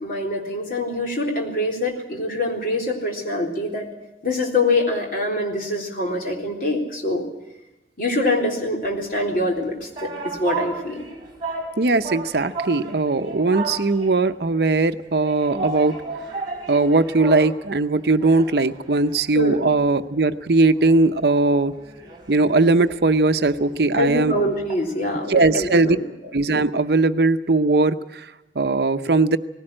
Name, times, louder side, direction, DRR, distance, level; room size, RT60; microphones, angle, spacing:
voice 1, 0.0-3.9 4.2-7.2 8.0-11.0 19.3-19.7 24.0-26.0, left 1 dB, 50° left, 0 dB, 3.7 m, -24 dB
sound 1, 9.5-14.3 15.2-17.6 17.9-19.8 20.2-20.3 20.6-24.8, right 3 dB, 25° right, 3.7 m, -34 dB
voice 2, 11.8-16.0 16.7-21.7 22.3-24.3 25.3-26.0 26.3-29.4, right 3 dB, 60° right, 10 dB, 0.7 m, -19 dB
19.0 x 17.0 x 8.8 m, 0.95 s
head